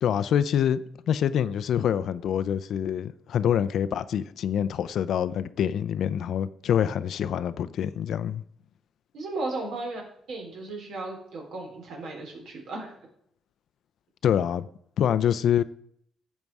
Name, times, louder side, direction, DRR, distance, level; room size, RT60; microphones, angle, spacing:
voice 1, 0.0-0.8 1.1-8.4 14.2-14.7 15.0-15.6, left 9 dB, 70° left, 0.5 m, -25 dB
voice 2, 9.1-10.0 10.3-13.0, right 2 dB, 75° right, 3.9 m, -35 dB
10.5 x 7.3 x 4.7 m
cardioid pair, 95°, 0 cm